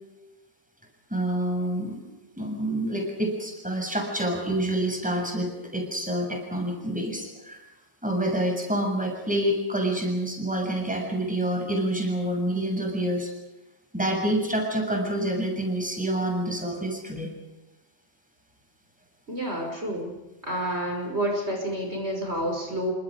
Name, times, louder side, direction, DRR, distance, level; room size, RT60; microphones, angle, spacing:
voice 1, 1.1-2.0 2.4-7.6 8.0-13.3 13.9-17.3, right 1 dB, 5° right, 2 dB, 7.1 m, -27 dB
voice 2, 19.3-20.1 20.4-22.9, right 1 dB, 35° right, 1 dB, 6.3 m, -29 dB
29.0 x 26.5 x 5.1 m, 1.0 s
omnidirectional pair, 1.9 m